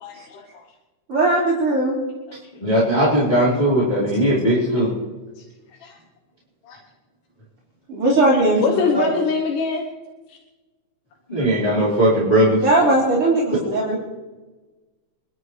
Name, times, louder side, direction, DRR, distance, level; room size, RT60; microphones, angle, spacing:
voice 1, 0.0-0.5 5.8-6.0 6.7-6.8 8.6-9.9, left 4 dB, 80° left, 3 dB, 2.7 m, -23 dB
voice 2, 1.1-2.0 7.9-9.0 12.6-14.0, right 2 dB, 45° right, -7 dB, 4.4 m, -19 dB
voice 3, 2.6-4.9 11.3-12.6, right 1 dB, 15° left, -8 dB, 4.5 m, -18 dB
25.5 x 12.5 x 3.3 m, 1.2 s
omnidirectional pair, 3.6 m